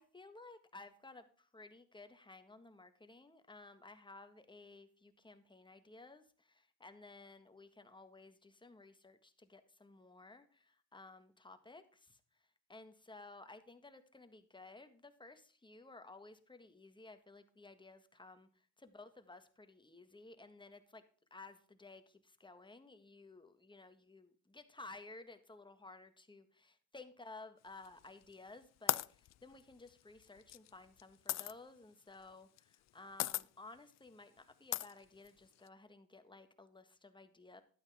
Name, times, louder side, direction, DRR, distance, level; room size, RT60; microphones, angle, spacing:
voice 1, 0.0-12.2 12.7-18.5 18.8-21.0 21.3-37.6, left 3 dB, 15° left, 9 dB, 1.6 m, -56 dB
sound 1, 27.8-28.3 28.9-31.5 32.6-32.9 33.2-33.4 34.0-34.1 34.7-35.7, left 14 dB, 60° left, 0.5 m, -38 dB
12.0 x 8.9 x 3.6 m, 0.43 s
cardioid pair, 90°, 30 cm